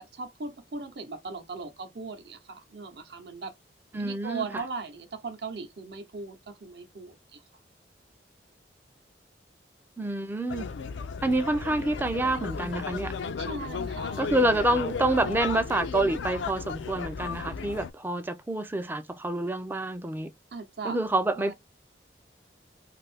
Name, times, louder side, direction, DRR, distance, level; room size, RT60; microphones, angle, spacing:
voice 1, 0.0-3.5 3.9-7.4 13.4-14.2 20.5-21.0 21.4-21.5, right 4 dB, 60° right, 0.7 m, -38 dB
voice 2, 3.9-4.5 10.0-10.7 11.2-13.1 14.2-20.3 20.8-21.5, right 2 dB, 10° right, 0.3 m, -27 dB
sound 1, 10.5-17.9, left 5 dB, 90° left, 0.4 m, -35 dB
2.6 x 2.4 x 3.3 m
head